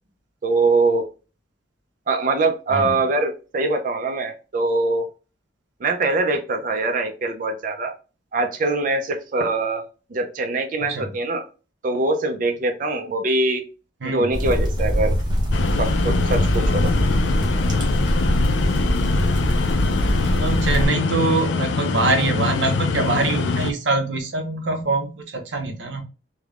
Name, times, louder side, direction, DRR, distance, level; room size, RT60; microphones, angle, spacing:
voice 1, 0.4-1.1 2.1-5.0 5.8-7.9 8.3-11.4 11.8-13.6 14.0-15.2 15.8-16.9, right 3 dB, 50° right, 5 dB, 0.4 m, -23 dB
voice 2, 10.8-11.1 14.0-14.3 20.4-26.0, right 3 dB, 90° right, 5 dB, 0.6 m, -24 dB
sound 1, 14.3-20.9, equal, 25° right, 0.8 m, -22 dB
sound 2, 15.5-23.7, left 4 dB, 85° left, 0.4 m, -24 dB
3.3 x 2.1 x 2.3 m, 0.33 s
head